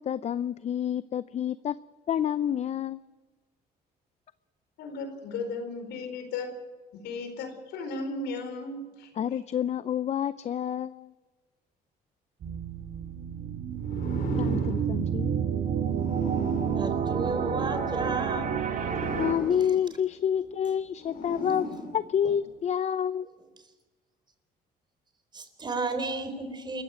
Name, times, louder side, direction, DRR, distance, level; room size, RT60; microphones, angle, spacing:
voice 1, 0.1-1.8 2.1-3.0 9.2-11.1 14.3-15.3 19.2-21.7 21.9-23.3, left 9 dB, 40° left, 15 dB, 0.5 m, -28 dB
voice 2, 4.8-6.5 6.9-9.2, left 3 dB, 80° left, 7 dB, 4.4 m, -35 dB
sound 1, 12.4-19.3, right 8 dB, 50° right, 2.8 m, -29 dB
sound 2, 13.8-18.0 18.7-22.6, left 3 dB, 60° left, 4.6 m, -40 dB
voice 3, 16.7-18.5 25.3-26.8, right 3 dB, 25° right, 8 dB, 3.8 m, -32 dB
27.5 x 15.0 x 6.4 m, 1.3 s
cardioid pair, 110°, 17 cm